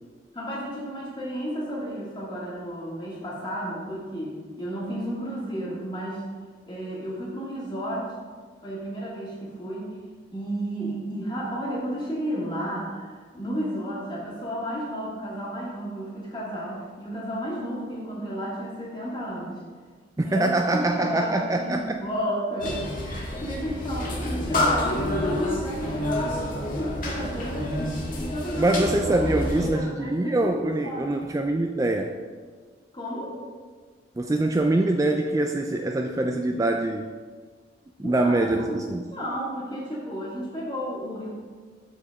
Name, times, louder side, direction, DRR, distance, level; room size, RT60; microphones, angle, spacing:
voice 1, 0.3-6.2 6.7-8.1 8.6-9.9 10.3-19.6 20.2-28.9 29.2-31.1 32.9-33.3 38.0-41.3, equal, 25° left, -6 dB, 2.3 m, -32 dB
voice 2, 20.2-22.0 28.6-32.1 34.2-37.1 38.0-39.0, right 2 dB, 15° right, 4 dB, 0.3 m, -24 dB
sound 1, 22.6-29.7, left 1 dB, 45° left, 1.6 m, -28 dB
12.5 x 4.9 x 3.6 m, 1.6 s
head